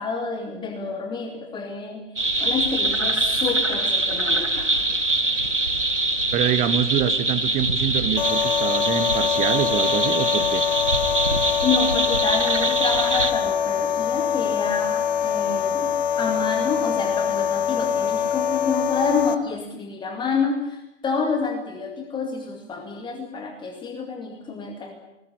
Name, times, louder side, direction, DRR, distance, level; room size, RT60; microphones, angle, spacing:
voice 1, 0.0-4.9 11.6-15.9 16.2-24.9, left 4 dB, 15° left, 3 dB, 2.3 m, -28 dB
sound 1, 2.2-13.3, right 2 dB, 90° right, 2.1 m, -23 dB
voice 2, 6.3-10.6, right 10 dB, 20° right, 13 dB, 1.1 m, -25 dB
sound 2, 8.2-19.3, left 8 dB, 40° left, 1.7 m, -24 dB
20.0 x 19.0 x 9.9 m, 0.87 s
figure-of-eight pair, 115°, 35 cm